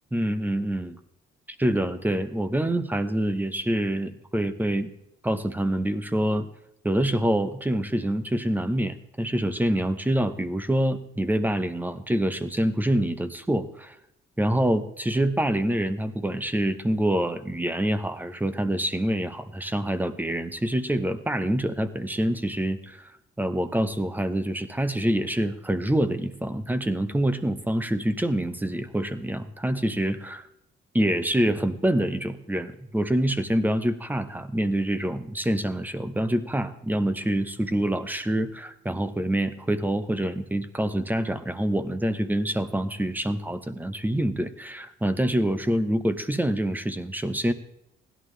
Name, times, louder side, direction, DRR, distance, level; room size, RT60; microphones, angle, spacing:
voice 1, 0.1-1.0 1.6-4.9 5.2-6.5 6.8-13.9 14.4-23.1 23.4-30.5 30.9-47.5, right 1 dB, 10° right, 11 dB, 1.0 m, -26 dB
16.5 x 11.5 x 3.3 m, 0.79 s
cardioid pair, 90°, 20 cm